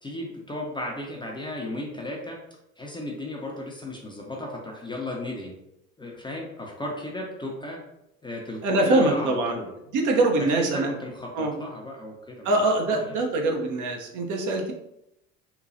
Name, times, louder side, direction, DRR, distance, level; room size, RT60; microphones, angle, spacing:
voice 1, 0.0-2.4 2.8-5.5 6.0-7.8 8.2-9.7 10.5-12.6 12.9-13.2, left 1 dB, 10° left, -1 dB, 0.5 m, -35 dB
voice 2, 8.6-9.6 9.9-10.9 11.4-11.5 12.4-14.7, right 2 dB, 50° right, 2 dB, 0.7 m, -23 dB
3.0 x 2.2 x 2.6 m, 0.84 s
figure-of-eight pair, 60°, 39 cm